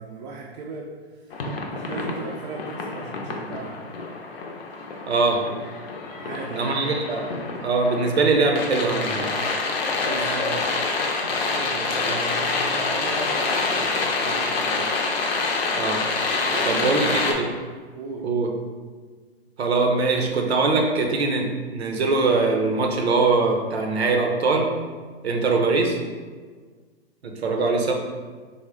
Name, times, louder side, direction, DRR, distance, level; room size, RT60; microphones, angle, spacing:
voice 1, 0.0-1.3 1.6-3.8 6.1-6.8 10.0-10.9 11.2-14.9 16.4-17.2 17.9-18.3 27.4-27.9, right 4 dB, 40° right, -1 dB, 0.4 m, -36 dB
sound 1, 1.3-17.3, left 3 dB, 65° left, 0.6 m, -27 dB
voice 2, 5.1-5.5 6.6-9.3 15.7-16.0 16.7-17.5 18.2-18.5 19.6-24.7 25.2-26.0 27.2-27.9, right 3 dB, 80° right, 2 dB, 0.7 m, -22 dB
Bird, 6.4-11.9, left 1 dB, 10° left, 0.5 m, -41 dB
3.5 x 2.1 x 3.7 m, 1.5 s
hypercardioid pair, 120°, 31 cm